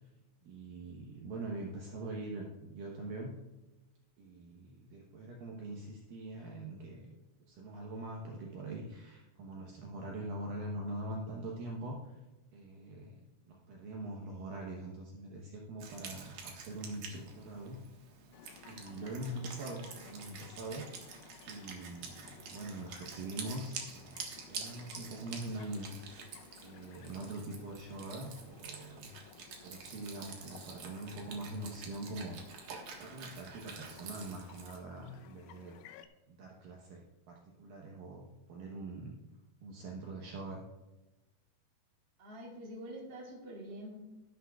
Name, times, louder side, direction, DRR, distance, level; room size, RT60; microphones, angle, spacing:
voice 1, 0.4-3.3 4.2-7.2 7.5-12.2 12.5-17.8 18.7-20.9 21.5-25.9 26.6-29.1 29.6-32.4 33.0-35.8 36.3-39.2 39.6-40.6, right 2 dB, 85° right, -1 dB, 1.9 m, -43 dB
Wind instrument woodwind instrument, 15.8-34.8, right 5 dB, 65° right, 2.1 m, -48 dB
sound 1, 18.3-36.1, left 9 dB, 85° left, 3.2 m, -57 dB
voice 2, 42.2-44.0, equal, 40° right, -2 dB, 1.9 m, -46 dB
13.0 x 11.5 x 2.3 m, 1.1 s
omnidirectional pair, 5.6 m